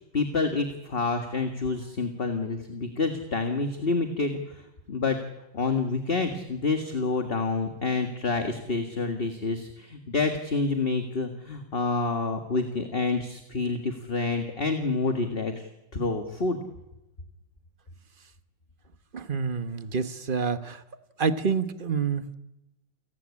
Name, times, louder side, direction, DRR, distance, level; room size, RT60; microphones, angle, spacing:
voice 1, 0.1-4.6 4.9-5.2 5.5-16.6, left 3 dB, 30° left, 6 dB, 1.9 m, -28 dB
voice 2, 19.1-20.8 21.2-22.3, right 5 dB, 35° right, 11 dB, 1.0 m, -28 dB
29.5 x 18.5 x 8.6 m, 0.94 s
omnidirectional pair, 2.3 m